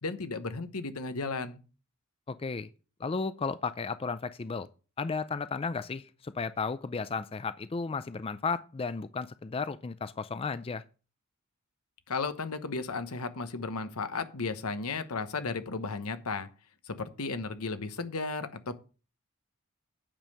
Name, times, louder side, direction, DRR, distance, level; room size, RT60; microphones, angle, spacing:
voice 1, 0.0-1.6 12.1-16.5 16.8-18.7, left 4 dB, 90° left, 1.1 m, -34 dB
voice 2, 2.3-2.7 3.0-4.7 5.0-10.8, left 4 dB, 25° left, 0.4 m, -34 dB
8.9 x 5.4 x 6.6 m
head